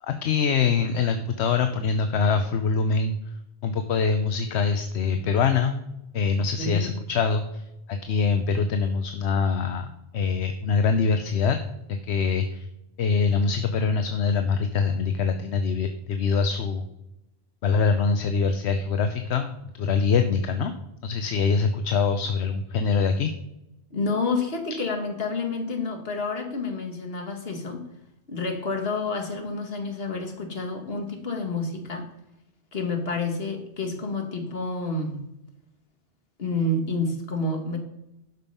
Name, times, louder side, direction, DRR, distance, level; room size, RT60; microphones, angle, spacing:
voice 1, 0.0-3.3 3.6-5.8 6.1-9.9 10.1-11.6 11.9-12.7 13.0-16.9 17.6-19.5 19.8-20.7 21.0-23.3, left 5 dB, 80° left, 8 dB, 1.0 m, -24 dB
voice 2, 6.6-6.9 23.9-27.8 28.3-32.1 32.7-35.2 36.4-37.8, left 3 dB, 65° left, 4 dB, 1.9 m, -29 dB
12.0 x 5.3 x 5.5 m, 0.87 s
omnidirectional pair, 1.1 m